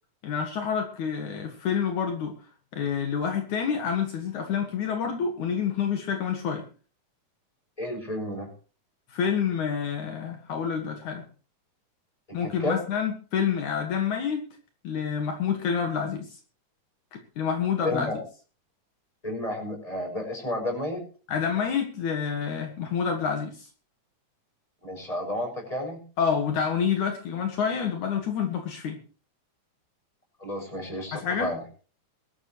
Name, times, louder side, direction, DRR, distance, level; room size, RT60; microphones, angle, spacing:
voice 1, 0.2-2.4 2.7-6.6 9.1-11.2 12.3-14.4 14.8-16.3 17.1-18.1 21.3-23.7 26.2-29.0 31.1-31.5, left 7 dB, 70° left, 4 dB, 3.1 m, -28 dB
voice 2, 7.8-8.5 12.3-12.8 17.8-18.2 19.2-21.0 24.8-26.0 30.4-31.6, left 1 dB, 10° left, 2 dB, 6.6 m, -31 dB
22.0 x 13.0 x 3.1 m, 0.38 s
omnidirectional pair, 3.7 m